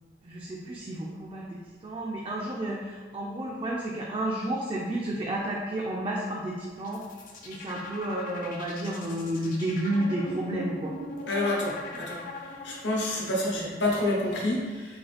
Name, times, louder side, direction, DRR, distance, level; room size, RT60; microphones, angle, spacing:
voice 1, 0.2-7.1 7.4-10.9, right 1 dB, 30° right, -2 dB, 0.3 m, -31 dB
sound 1, 6.8-13.1, left 1 dB, 50° left, 0.5 m, -40 dB
voice 2, 11.3-15.0, left 1 dB, 85° left, -3 dB, 0.9 m, -29 dB
3.8 x 2.5 x 3.2 m, 1.4 s
head